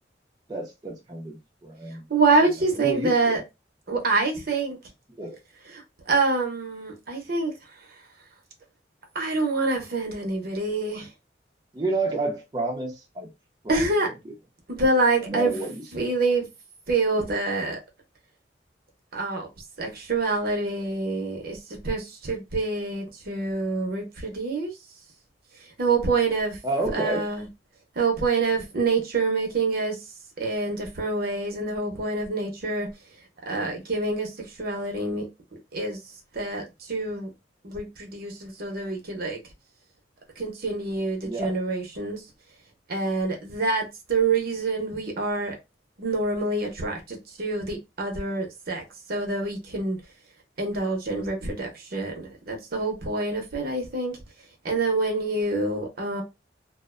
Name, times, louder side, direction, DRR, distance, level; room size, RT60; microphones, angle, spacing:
voice 1, 0.5-1.4 1.6-2.1 2.8-3.4 5.2-5.4 11.7-13.3 13.6-14.3 15.2-16.1 26.6-27.3 41.2-41.6, right 2 dB, 25° right, 0.6 m, -30 dB
voice 2, 2.1-3.4 3.9-4.8 6.1-7.5 9.1-11.1 13.7-14.1 14.7-15.6 15.9-16.4 16.9-17.8 19.1-19.5 19.8-21.6 21.8-24.7 25.8-26.6 26.9-27.5 28.0-29.9 30.4-32.9 33.5-34.3 34.6-35.3 35.7-36.0 36.3-36.6 36.9-37.3 37.6-39.4 40.4-42.2 42.9-45.6 46.0-48.8 49.1-50.0 50.6-52.1 52.5-54.1 54.6-56.2, right 3 dB, 55° right, 0.8 m, -26 dB
2.5 x 2.1 x 2.4 m
head